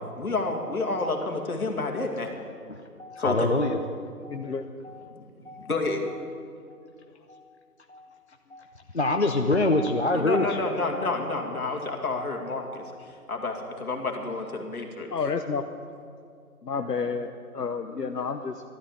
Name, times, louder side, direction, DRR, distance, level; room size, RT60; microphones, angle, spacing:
voice 1, 0.2-2.3 3.2-3.3 5.7-6.0 10.3-12.8 13.3-13.5 13.8-15.1, left 3 dB, 65° left, 1 dB, 2.4 m, -29 dB
voice 2, 2.7-3.9 4.2-4.5 4.8-5.2 5.4-5.7 6.1-6.3 6.7-6.8 7.3-7.6 7.9-8.2 8.5-11.2 11.6-11.9 12.2-12.5 12.8-13.2 13.5-13.8, left 2 dB, 45° left, 4 dB, 0.6 m, -28 dB
voice 3, 4.2-4.6 15.1-15.6 16.6-18.6, left 5 dB, 80° left, 6 dB, 1.0 m, -30 dB
12.5 x 9.7 x 8.4 m, 2.3 s
figure-of-eight pair, 170°, 47 cm